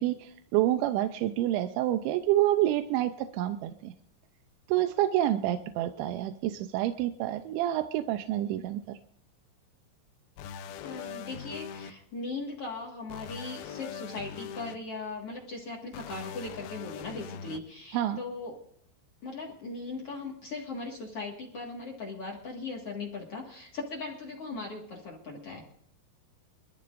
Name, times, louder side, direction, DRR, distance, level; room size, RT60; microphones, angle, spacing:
voice 1, 0.0-3.9 4.7-9.0 17.9-18.2, right 13 dB, 85° right, 8 dB, 3.0 m, -28 dB
sound 1, 10.4-11.9 13.1-14.7 15.9-17.6, left 7 dB, 80° left, 2.3 m, -41 dB
voice 2, 10.8-18.6 19.2-25.7, left 3 dB, 50° left, -1 dB, 1.9 m, -39 dB
24.5 x 14.0 x 2.6 m, 0.65 s
omnidirectional pair, 5.2 m